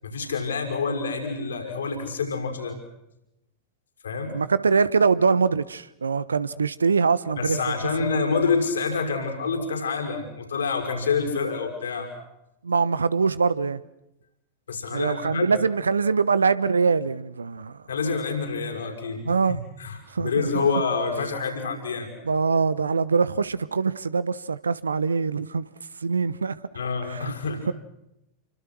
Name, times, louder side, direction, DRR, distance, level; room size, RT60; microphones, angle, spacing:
voice 1, 0.0-2.8 4.0-4.3 7.4-12.1 14.7-15.5 17.9-22.1 26.7-27.7, left 5 dB, 70° left, 6.3 m, -27 dB
voice 2, 4.3-7.6 8.0-8.2 12.6-13.8 14.9-17.8 19.2-19.6 20.1-20.7 22.2-25.6 26.0-26.6 27.1-27.3 27.7-27.8, right 5 dB, 75° right, 1.1 m, -23 dB
29.5 x 25.0 x 6.2 m
figure-of-eight pair, 90°, 0 cm